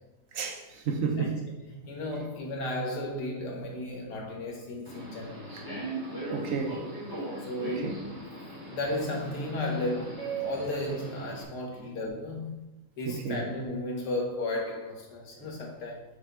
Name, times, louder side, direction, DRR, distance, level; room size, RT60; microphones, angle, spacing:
voice 1, 0.3-1.4 6.3-6.8 7.8-7.9 13.1-13.4, right 5 dB, 65° right, 1.0 m, -31 dB
voice 2, 1.8-5.8 7.5-8.3 8.7-12.5 13.0-16.0, left 1 dB, 90° left, 1.7 m, -34 dB
Subway metro underground, 4.8-11.4, right 2 dB, 15° right, 1.3 m, -38 dB
6.5 x 3.3 x 5.0 m
omnidirectional pair, 1.7 m